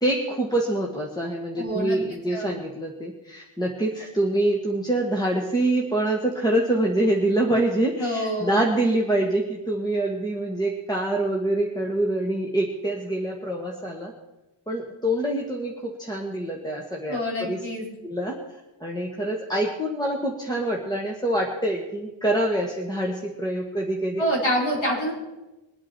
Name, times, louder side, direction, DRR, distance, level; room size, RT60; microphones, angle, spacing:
voice 1, 0.0-14.1 14.7-17.6 18.0-18.3 18.8-24.2, right 1 dB, 10° left, -1 dB, 1.6 m, -25 dB
voice 2, 1.6-2.0 2.3-2.5 8.0-8.6 17.1-17.9 24.2-25.1, equal, 70° left, -4 dB, 4.9 m, -26 dB
23.0 x 8.6 x 4.5 m, 1.0 s
wide cardioid pair, 85°, 48 cm